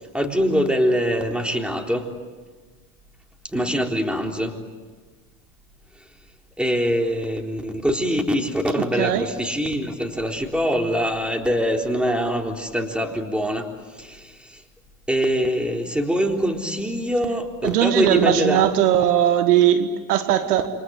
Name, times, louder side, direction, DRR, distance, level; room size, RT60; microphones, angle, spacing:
voice 1, 0.1-2.1 3.5-4.5 6.6-13.7 14.0-14.6 15.1-18.7, equal, ahead, 2 dB, 3.8 m, -23 dB
voice 2, 17.6-20.7, right 10 dB, 80° right, 9 dB, 1.9 m, -19 dB
28.5 x 25.5 x 8.1 m, 1.4 s
hypercardioid pair, 85°, 45 cm